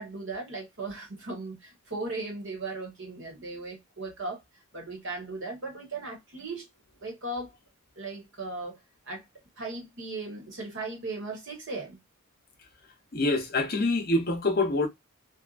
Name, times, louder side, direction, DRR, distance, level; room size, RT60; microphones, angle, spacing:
voice 1, 0.0-4.4 4.7-6.7 7.0-7.5 8.0-8.8 9.0-9.2 9.6-12.0, right 3 dB, 55° right, 1.3 m, -37 dB
voice 2, 13.1-14.9, left 2 dB, 45° left, 0.7 m, -25 dB
2.7 x 2.4 x 2.4 m
head